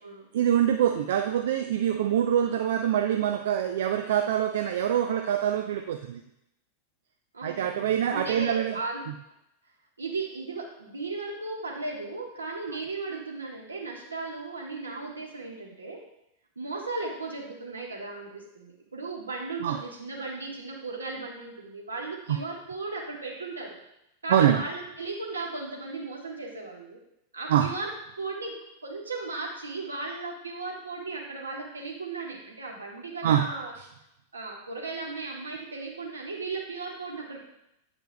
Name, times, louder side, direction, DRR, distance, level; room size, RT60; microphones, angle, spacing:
voice 1, 0.3-6.2 7.4-8.8 19.6-19.8 22.3-22.4 24.3-24.6 27.5-27.7 33.2-33.5, right 10 dB, 60° right, 6 dB, 0.4 m, -25 dB
voice 2, 7.3-9.0 10.0-16.0 16.6-23.8 24.2-27.0 27.3-27.9 28.2-28.5 28.8-33.7 34.3-37.4, right 3 dB, 75° right, -2 dB, 1.3 m, -36 dB
8.9 x 4.9 x 2.3 m, 0.82 s
figure-of-eight pair, 90°, 0 cm